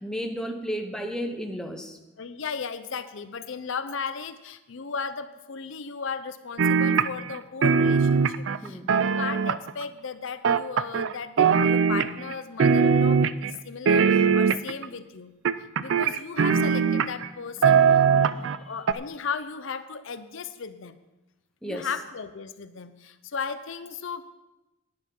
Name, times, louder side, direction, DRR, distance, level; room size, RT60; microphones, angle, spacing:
voice 1, 0.0-2.0 8.6-8.9 17.7-18.6 21.6-21.9, equal, 5° left, 3 dB, 0.8 m, -34 dB
voice 2, 2.2-15.3 15.8-21.0 21.6-24.3, left 5 dB, 60° left, 11 dB, 0.6 m, -36 dB
sound 1, 6.6-7.4 7.6-9.8 10.4-11.1 11.4-12.3 12.6-13.5 13.9-14.9 15.5-17.3 17.6-18.6 18.9-19.0, right 6 dB, 60° right, 0.4 m, -21 dB
10.5 x 9.8 x 5.4 m, 1.0 s
head